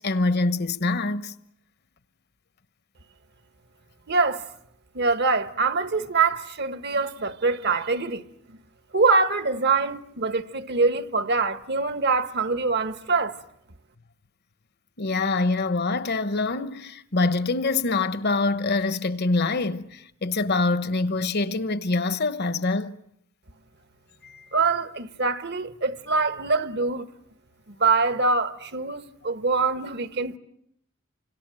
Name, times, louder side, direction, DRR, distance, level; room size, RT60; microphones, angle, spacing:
voice 1, 0.0-1.3 15.0-23.0 24.2-24.5, left 3 dB, 50° left, 1.1 m, -25 dB
voice 2, 4.1-4.4 4.9-8.2 8.9-13.3 24.5-27.1 27.7-30.4, right 4 dB, 55° right, 1.2 m, -24 dB
29.0 x 26.0 x 7.6 m
head